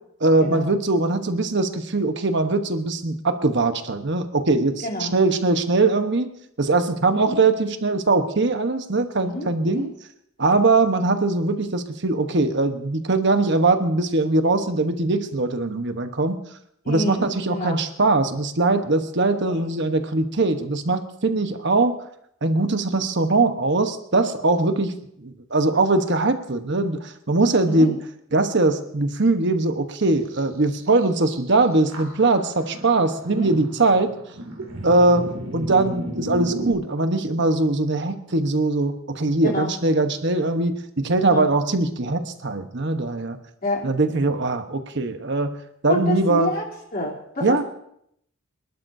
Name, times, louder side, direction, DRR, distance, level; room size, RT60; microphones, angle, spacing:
voice 1, 0.2-6.3 6.6-9.9 10.4-16.4 16.9-22.0 22.4-28.0 28.3-34.1 34.8-43.4 43.8-45.6 45.8-46.5 47.4-47.6, right 2 dB, 60° right, 7 dB, 1.1 m, -21 dB
voice 2, 9.2-9.9 16.8-17.8 19.4-19.6 27.6-27.9 33.3-33.5 39.4-39.7 41.2-41.5 43.6-43.9 45.9-46.6 46.9-47.6, left 1 dB, 45° left, -2 dB, 3.3 m, -28 dB
sound 1, 30.0-30.1 30.3-30.4 30.8-31.4 31.9-36.7, equal, 80° right, 2.8 m, -34 dB
26.5 x 12.0 x 2.7 m, 0.71 s
head